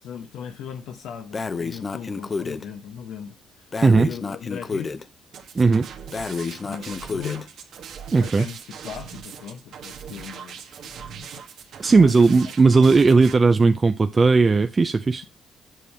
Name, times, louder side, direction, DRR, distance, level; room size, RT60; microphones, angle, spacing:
voice 1, 0.0-3.7 4.0-4.9 6.6-7.5 8.2-11.3 11.9-12.5 12.8-12.9, left 8 dB, 85° left, 1.0 m, -38 dB
Breathing, 1.3-2.6 3.7-5.0 6.1-7.5, left 4 dB, 35° left, 0.7 m, -30 dB
voice 2, 3.8-4.1 5.5-5.9 8.1-8.5 11.8-15.2, right 4 dB, 30° right, 0.5 m, -17 dB
sound 1, 5.3-13.3, right 7 dB, 70° right, 1.3 m, -40 dB
7.7 x 5.5 x 4.7 m
cardioid pair, 90°, 0 cm